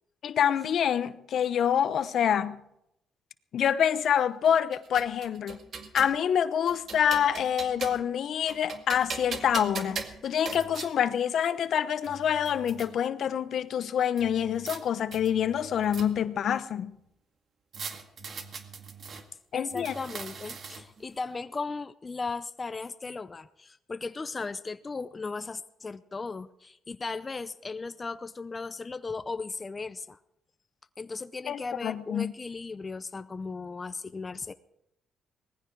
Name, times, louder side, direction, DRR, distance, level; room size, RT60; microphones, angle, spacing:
voice 1, 0.2-2.6 3.5-5.6 5.9-17.0 19.5-19.9 31.5-32.3, left 9 dB, 65° left, 0.9 m, -26 dB
sound 1, 4.4-6.2 6.7-8.1 8.5-10.9 11.7-11.8 12.0-12.9 14.2-14.8 15.1-16.4 17.7-19.2 19.7-21.0, right 5 dB, 55° right, 2.0 m, -40 dB
voice 2, 19.5-30.2 31.0-34.5, left 4 dB, 30° left, 0.6 m, -37 dB
19.5 x 15.0 x 4.7 m
cardioid pair, 90°, 0 cm